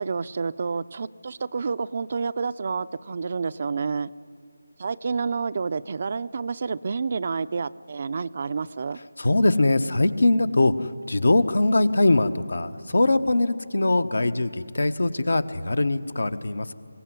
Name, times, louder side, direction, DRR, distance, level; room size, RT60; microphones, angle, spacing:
voice 1, 0.0-4.1 4.8-9.0, right 5 dB, 45° right, 15 dB, 0.5 m, -29 dB
voice 2, 9.2-16.7, left 2 dB, 70° left, 12 dB, 1.1 m, -22 dB
23.0 x 16.5 x 9.6 m, 2.4 s
figure-of-eight pair, 165°, 0 cm